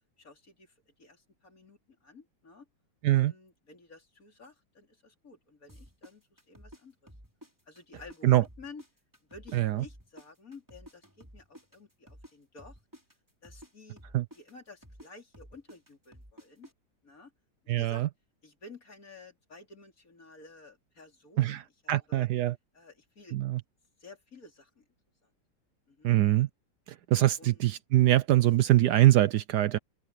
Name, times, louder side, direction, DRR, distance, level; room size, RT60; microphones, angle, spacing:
voice 1, 0.2-2.7 3.1-7.1 7.7-8.8 9.2-12.8 13.4-14.0 14.3-16.7 17.0-17.3 17.6-18.1 18.4-22.3 22.7-23.5 24.0-24.8 25.2-25.3 25.9-26.1 27.4-27.7, left 3 dB, 50° left, 4.1 m, -52 dB
sound 1, 5.7-8.2 8.4-12.3 12.6-16.7, equal, 10° right, 5.1 m, -52 dB
voice 2, 9.5-9.8 14.1-14.2 17.7-18.1 21.4-21.6 21.9-22.5 23.3-23.6 26.0-26.5 27.1-29.8, right 15 dB, 70° right, 1.1 m, -23 dB
omnidirectional pair, 2.0 m